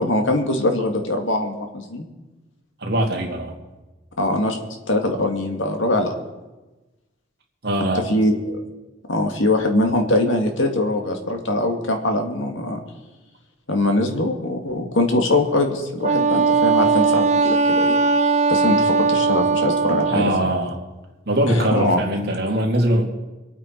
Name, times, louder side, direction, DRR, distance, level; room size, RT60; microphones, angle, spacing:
voice 1, 0.0-2.1 4.2-4.6 4.9-6.1 8.1-8.6 9.1-12.8 13.7-18.0 18.5-20.3 21.5-22.0, left 1 dB, 70° left, 4 dB, 2.1 m, -22 dB
voice 2, 2.8-3.5 7.6-8.0 20.1-20.7 21.3-23.0, right 1 dB, 55° right, 1 dB, 2.5 m, -21 dB
Wind instrument woodwind instrument, 16.0-20.3, right 4 dB, 35° right, 0.4 m, -19 dB
25.0 x 9.1 x 4.6 m, 1.1 s
head